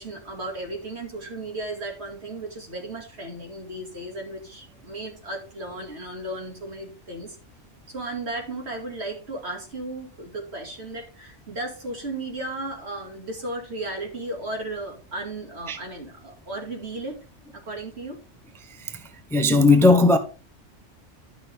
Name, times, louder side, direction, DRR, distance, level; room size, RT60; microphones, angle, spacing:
voice 1, 0.0-7.4 7.9-17.1 17.5-18.2, right 2 dB, 60° right, 2.6 m, -35 dB
voice 2, 19.3-20.2, left 2 dB, ahead, 0.7 m, -17 dB
11.0 x 6.3 x 3.5 m
omnidirectional pair, 1.3 m